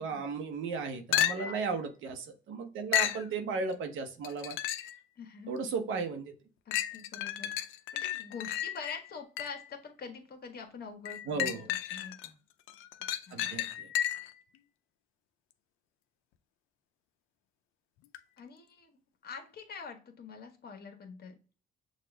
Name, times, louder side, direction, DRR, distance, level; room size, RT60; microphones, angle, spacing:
voice 1, 0.0-4.6 5.5-6.3 11.3-11.7 13.3-13.9, right 4 dB, 80° right, 6 dB, 0.9 m, -35 dB
sound 1, 1.1-1.7 2.9-3.3 4.2-5.0 5.6-5.7 6.7-9.7 11.1-12.3 12.7-14.4 18.1-18.2, left 12 dB, 85° left, 0.5 m, -33 dB
voice 2, 5.2-5.6 6.6-7.5 7.9-12.3 13.3-13.5 18.4-18.9 19.2-21.4, left 5 dB, 50° left, 5 dB, 1.2 m, -45 dB
6.4 x 2.4 x 3.3 m, 0.36 s
cardioid pair, 90°, 20 cm